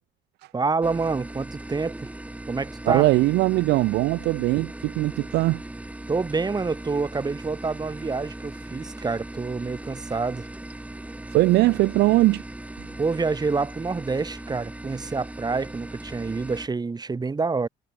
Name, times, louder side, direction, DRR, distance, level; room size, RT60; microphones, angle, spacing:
voice 1, 0.5-2.1 2.5-3.1 6.1-10.5 13.0-17.7, right 4 dB, 25° right, 7.2 m, -27 dB
sound 1, 0.8-16.7, right 1 dB, 10° right, 3.4 m, -39 dB
voice 2, 2.9-5.6 11.3-12.4, right 19 dB, 80° right, 0.5 m, -20 dB
cardioid pair, 110°, 17 cm